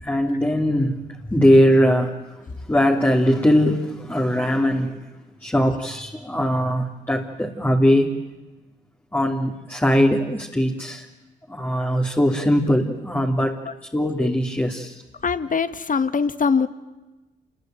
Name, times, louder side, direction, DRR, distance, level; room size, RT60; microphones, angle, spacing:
voice 1, 0.0-1.0 1.3-2.2 2.7-5.0 5.4-8.2 9.1-11.1 11.5-13.6 13.9-15.0, equal, 10° left, -1 dB, 3.1 m, -20 dB
voice 2, 15.2-16.7, left 5 dB, 45° left, 12 dB, 1.7 m, -22 dB
27.5 x 22.0 x 9.1 m, 1.1 s
cardioid pair, 70°, 19 cm